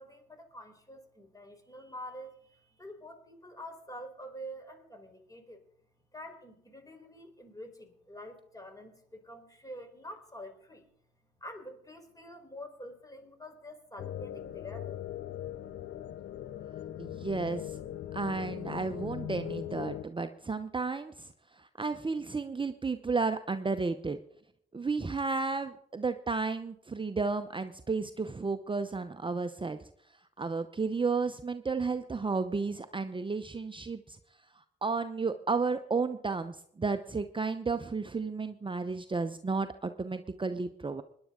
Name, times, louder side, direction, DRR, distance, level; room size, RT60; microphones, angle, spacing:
voice 1, 0.0-5.6 6.1-10.9 11.4-15.0, equal, 20° left, 5 dB, 4.4 m, -47 dB
sound 1, 14.0-20.1, left 12 dB, 70° left, 0.6 m, -40 dB
voice 2, 17.0-17.8 18.1-24.2 24.7-29.8 30.4-34.2 34.8-41.0, right 4 dB, 25° right, 9 dB, 0.8 m, -33 dB
20.5 x 10.5 x 3.8 m, 0.70 s
hypercardioid pair, 45°, 20 cm